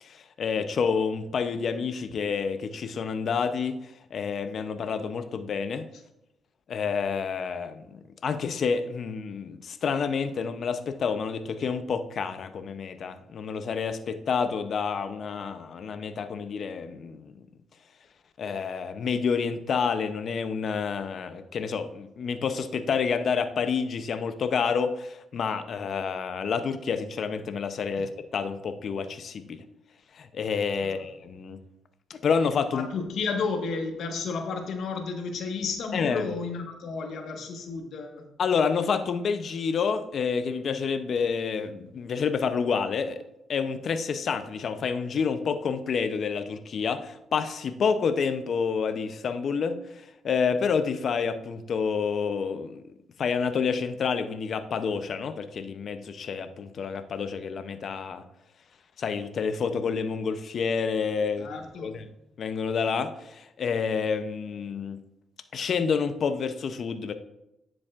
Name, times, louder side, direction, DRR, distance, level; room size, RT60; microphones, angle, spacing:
voice 1, 0.0-5.9 6.7-17.3 18.4-29.6 30.1-31.6 32.1-32.9 35.9-36.2 38.4-43.2 43.5-52.8 53.2-58.2 59.0-61.5 61.8-62.0 62.4-65.0 65.5-67.1, left 6 dB, 55° left, 10 dB, 0.6 m, -29 dB
voice 2, 32.7-38.3 61.4-62.0, left 4 dB, 70° left, 3 dB, 1.3 m, -32 dB
9.8 x 7.1 x 2.4 m, 0.87 s
cardioid pair, 90°, 0 cm